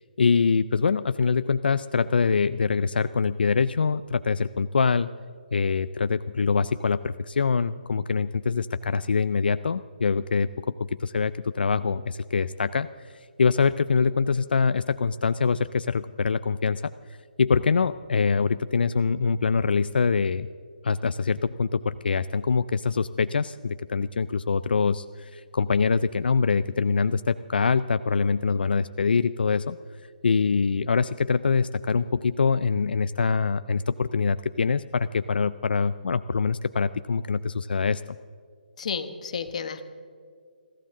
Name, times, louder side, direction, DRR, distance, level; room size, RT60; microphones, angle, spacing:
voice 1, 0.0-5.1 5.5-10.7 11.0-16.8 17.4-20.5 20.8-29.8 30.2-38.2, left 5 dB, 80° left, 13 dB, 0.4 m, -24 dB
voice 2, 38.8-39.8, left 6 dB, 45° left, 8 dB, 1.2 m, -31 dB
22.0 x 15.0 x 3.7 m, 2.1 s
hypercardioid pair, 175°, 5 cm